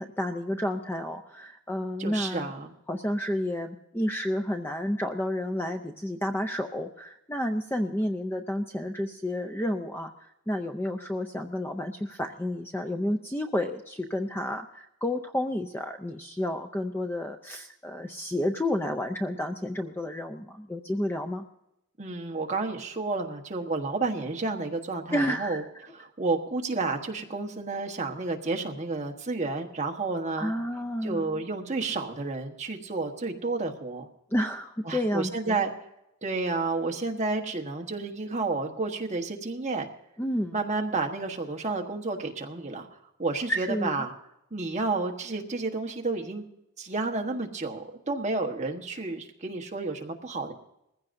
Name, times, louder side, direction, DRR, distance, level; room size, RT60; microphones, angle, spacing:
voice 1, 0.0-2.5 2.9-21.4 25.1-25.6 30.4-31.4 34.3-35.6 40.2-40.6 43.5-44.1, left 1 dB, 10° left, 6 dB, 0.4 m, -31 dB
voice 2, 2.0-2.7 22.0-25.6 25.9-30.5 31.0-34.1 34.8-35.7 36.2-39.9 40.5-42.9 43.2-44.1 44.5-46.4 46.8-50.5, right 3 dB, 30° right, 2 dB, 1.2 m, -31 dB
20.0 x 15.5 x 2.6 m, 0.85 s
head